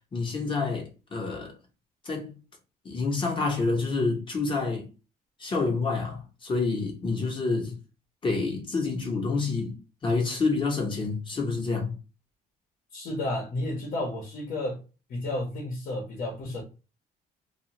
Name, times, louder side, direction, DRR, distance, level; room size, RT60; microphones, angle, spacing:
voice 1, 0.1-1.6 2.0-2.4 2.8-4.9 5.4-7.8 8.2-9.8 10.0-12.0, left 3 dB, 30° left, 1.0 m, -28 dB
voice 2, 12.9-14.8 15.1-16.6, left 1 dB, 55° left, 1.0 m, -32 dB
2.4 x 2.3 x 2.9 m
cardioid pair, 110°, 17 cm